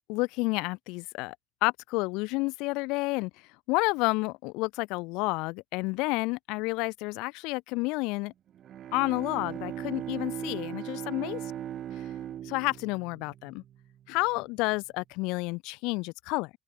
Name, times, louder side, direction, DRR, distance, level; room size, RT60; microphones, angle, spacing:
voice 1, 0.1-1.3 1.6-3.3 3.7-8.3 8.9-11.4 12.0-12.1 12.4-13.6 14.1-16.5, left 25 dB, 80° left, 2.9 m, -30 dB
Bowed string instrument, 8.5-14.1, right 11 dB, 55° right, 2.6 m, -39 dB
open air
supercardioid pair, 90°, 0 cm